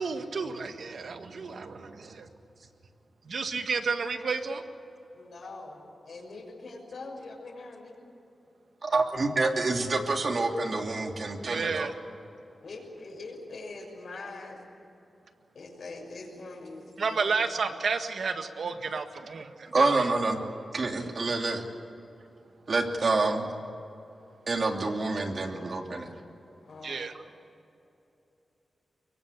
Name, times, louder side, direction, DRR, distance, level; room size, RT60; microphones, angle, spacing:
voice 1, 0.0-2.2 3.3-4.6 11.4-11.9 17.0-19.4 19.8-20.1 26.8-27.1, right 5 dB, 70° right, 7 dB, 1.8 m, -31 dB
voice 2, 5.1-8.0 12.6-14.6 15.5-17.4 26.6-27.1, left 3 dB, 65° left, -1 dB, 6.3 m, -43 dB
voice 3, 8.8-11.9 19.7-20.4 20.7-21.7 22.7-23.5 24.5-26.1, right 3 dB, 50° right, 3 dB, 2.9 m, -27 dB
24.0 x 22.5 x 8.5 m, 2.9 s
wide cardioid pair, 115°, 0 cm